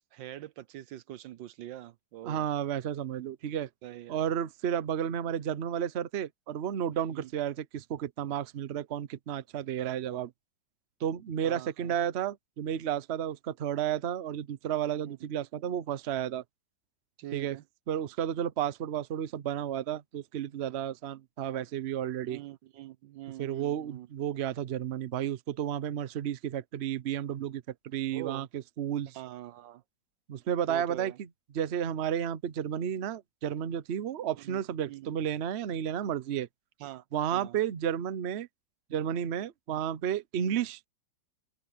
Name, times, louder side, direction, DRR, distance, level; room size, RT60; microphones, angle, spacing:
voice 1, 0.1-2.5 3.8-4.2 7.1-7.3 9.8-10.2 11.4-11.9 14.9-15.2 17.2-17.6 22.2-24.1 28.1-28.5 29.1-29.8 30.7-31.2 34.4-34.6 34.9-35.1 36.8-37.0 37.3-37.6 40.4-40.6, right 13 dB, 85° right, 1.5 m, -44 dB
voice 2, 2.2-3.7 4.1-10.3 11.0-16.4 17.3-17.6 17.9-22.4 23.4-29.2 30.3-31.3 31.5-36.5 37.1-38.5 38.9-40.9, right 9 dB, 50° right, 0.8 m, -32 dB
open air
omnidirectional pair, 1.9 m